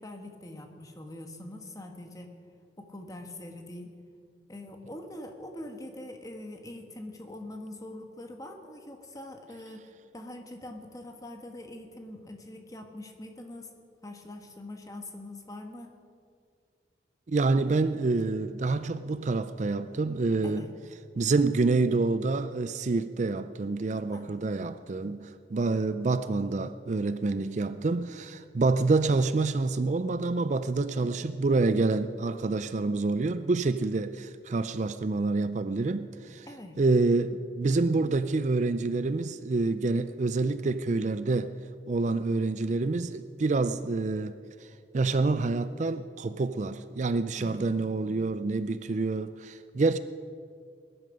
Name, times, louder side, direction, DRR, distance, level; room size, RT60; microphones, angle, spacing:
voice 1, 0.0-2.4 2.8-3.9 4.5-13.7 14.0-15.9 20.4-20.7 24.1-24.4 30.9-31.1 36.4-36.8 47.3-47.6, left 1 dB, 20° left, 1.4 m, -43 dB
voice 2, 17.3-20.7 21.2-36.5 36.8-41.5 41.9-44.4 44.6-44.7 44.9-50.0, right 3 dB, 40° right, 0.4 m, -27 dB
20.5 x 11.0 x 5.2 m
head